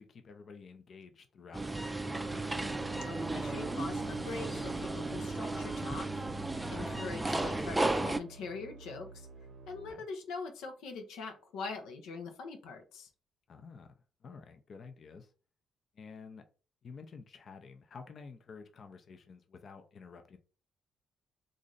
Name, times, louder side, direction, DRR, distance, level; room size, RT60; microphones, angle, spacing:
voice 1, 0.0-2.1 6.7-7.0 9.9-10.0 13.5-13.9 14.2-15.3 15.9-16.4 16.8-20.4, left 5 dB, 50° left, 0.6 m, -51 dB
sound 1, 1.5-8.2, right 2 dB, 15° right, 0.4 m, -34 dB
sound 2, 2.1-9.9, right 4 dB, 70° right, 0.6 m, -51 dB
voice 2, 3.0-6.1 6.7-9.3 9.7-13.1, left 4 dB, 90° left, 0.7 m, -43 dB
3.1 x 2.6 x 3.9 m
cardioid pair, 90°, 0 cm